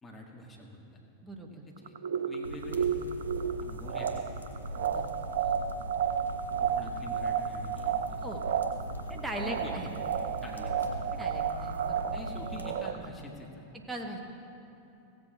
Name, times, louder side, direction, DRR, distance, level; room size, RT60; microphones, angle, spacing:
voice 1, 0.0-0.8 1.5-1.9 2.2-2.9 3.6-4.2 5.3-5.6 6.6-8.3 9.3-9.9 10.4-10.9 11.9-13.6, left 1 dB, 15° left, -1 dB, 1.8 m, -46 dB
voice 2, 1.2-1.6 4.9-5.1 8.2-8.4 9.1-9.9 11.1-12.0 13.9-14.2, right 1 dB, 10° right, 1 dB, 1.4 m, -39 dB
sound 1, 1.8-13.1, right 8 dB, 60° right, 0.5 m, -32 dB
sound 2, 2.4-12.7, right 1 dB, 80° right, 1.2 m, -41 dB
16.5 x 8.1 x 4.1 m, 2.9 s
figure-of-eight pair, 90°, 0 cm